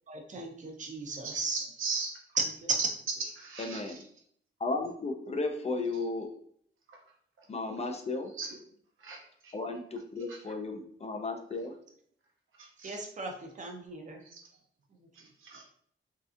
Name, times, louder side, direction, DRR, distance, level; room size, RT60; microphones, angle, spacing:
voice 1, 0.1-1.6 2.6-2.7 12.8-14.2, right 4 dB, 35° right, 3 dB, 0.5 m, -36 dB
voice 2, 1.2-2.1 3.4-4.0 7.4-7.5 8.3-8.6 9.0-9.5 10.3-10.5 12.6-13.0 14.3-14.4 15.2-15.7, right 4 dB, 75° right, 0 dB, 0.7 m, -40 dB
voice 3, 3.6-4.0 4.6-6.3 7.5-8.3 9.5-11.8, left 3 dB, 30° left, 4 dB, 0.3 m, -34 dB
3.1 x 2.7 x 2.4 m, 0.62 s
wide cardioid pair, 155°, 21 cm